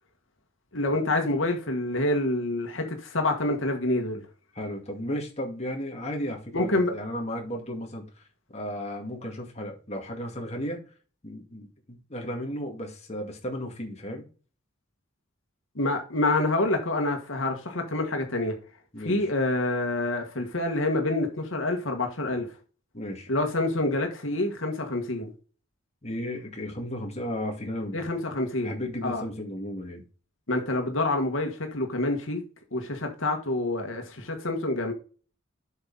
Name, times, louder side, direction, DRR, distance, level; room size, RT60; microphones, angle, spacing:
voice 1, 0.7-4.2 6.5-6.9 15.8-18.6 19.0-22.5 23.3-25.3 27.9-28.7 29.0-29.2 30.5-32.4 32.7-34.9, left 2 dB, 80° left, 1.8 m, -27 dB
voice 2, 4.5-8.2 8.5-10.8 11.2-14.2 18.9-19.3 22.9-23.3 26.0-28.0 28.6-30.0, equal, 35° left, 2.2 m, -34 dB
8.0 x 5.5 x 4.1 m
head